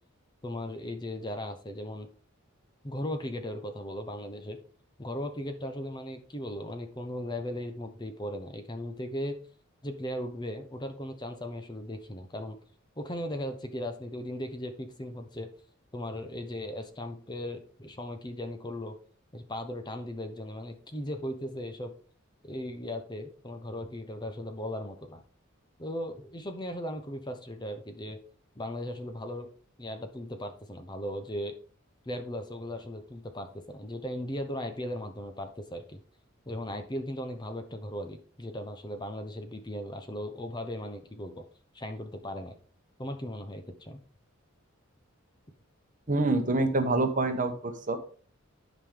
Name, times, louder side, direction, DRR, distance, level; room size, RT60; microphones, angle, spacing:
voice 1, 0.4-2.1 2.8-4.6 5.0-9.4 9.8-12.6 13.0-15.5 15.9-19.0 19.3-21.9 22.4-25.2 25.8-28.2 28.6-29.5 29.8-31.5 32.0-36.0 36.5-41.5 41.7-42.6 43.0-44.0, left 1 dB, 20° left, 6 dB, 0.8 m, -37 dB
voice 2, 46.1-48.0, right 2 dB, 40° right, 6 dB, 1.2 m, -26 dB
11.5 x 5.2 x 3.8 m, 0.43 s
head